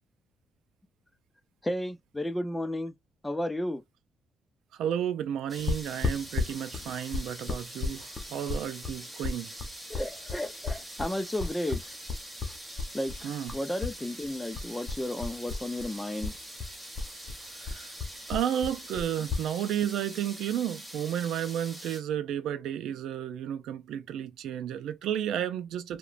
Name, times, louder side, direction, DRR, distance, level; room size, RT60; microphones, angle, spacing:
voice 1, 1.6-2.9 3.2-3.8 9.9-11.8 12.9-16.4, left 1 dB, 10° left, 0.4 m, -33 dB
voice 2, 4.8-9.5 13.2-13.5 17.6-17.9 18.3-26.0, right 10 dB, 80° right, 0.3 m, -32 dB
sound 1, 5.5-22.0, right 1 dB, 5° right, 1.0 m, -44 dB
sound 2, 5.7-14.0 14.2-15.9 16.2-19.5, left 4 dB, 40° left, 0.8 m, -34 dB
2.9 x 2.2 x 2.4 m
cardioid pair, 90°, 0 cm